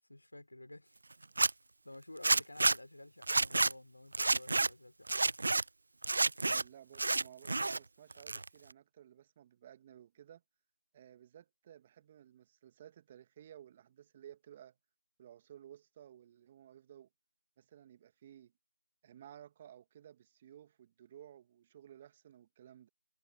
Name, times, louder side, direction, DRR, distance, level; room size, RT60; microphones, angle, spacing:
voice 1, 0.1-1.0 1.8-5.1, left 1 dB, 60° left, 4.2 m, -52 dB
Zipper (clothing), 1.2-1.5 2.2-2.8 3.2-3.7 4.1-4.7 5.1-5.6 6.0-6.6 7.0-7.8 8.1-8.7, right 3 dB, 35° right, 0.4 m, -29 dB
voice 2, 6.4-10.4 10.9-14.8 15.2-17.1 17.6-18.5 19.0-22.9, right 10 dB, 10° right, 1.8 m, -56 dB
figure-of-eight pair, 175°, 0 cm